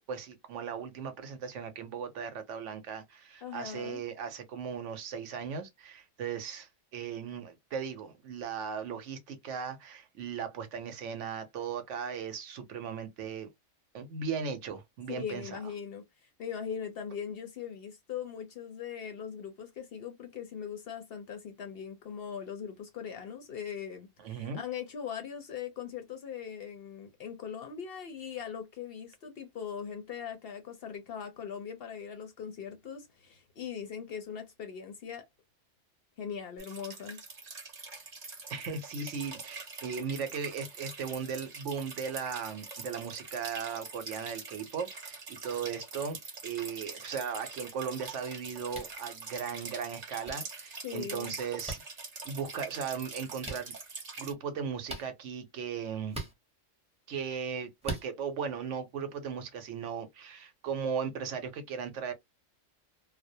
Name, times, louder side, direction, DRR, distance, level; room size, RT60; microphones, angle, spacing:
voice 1, 0.1-13.5 13.9-15.6 24.2-24.6 38.5-46.2 46.4-51.8 52.2-53.7 54.2-56.2 57.1-62.1, right 6 dB, 70° right, 0.9 m, -37 dB
voice 2, 3.4-4.0 15.1-35.3 36.2-37.2 50.8-51.3, left 7 dB, 60° left, 0.7 m, -40 dB
sound 1, 36.6-54.3, right 4 dB, 40° right, 0.7 m, -44 dB
sound 2, 48.7-48.9 50.2-50.3 51.6-51.8 53.4-53.6 54.8-55.1 56.1-56.3 57.8-58.1, right 2 dB, 5° right, 0.7 m, -38 dB
2.3 x 2.1 x 2.6 m
omnidirectional pair, 1.3 m